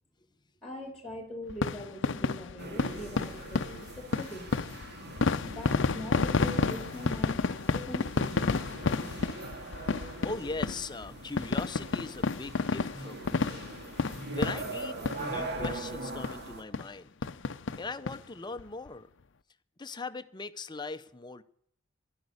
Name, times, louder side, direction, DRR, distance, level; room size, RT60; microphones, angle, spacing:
voice 1, 0.6-4.7 5.5-8.5, left 1 dB, ahead, 2.2 m, -42 dB
sound 1, 1.5-15.4 15.6-15.8 16.2-16.3 16.7-16.9 17.2-18.2 18.6-18.7 18.9-19.0, left 4 dB, 65° left, 0.6 m, -31 dB
sound 2, 2.6-16.6, right 2 dB, 55° right, 2.2 m, -42 dB
voice 2, 10.2-13.7 14.3-17.1 17.8-19.1 19.8-21.4, left 3 dB, 20° left, 0.6 m, -40 dB
11.5 x 10.5 x 9.6 m
head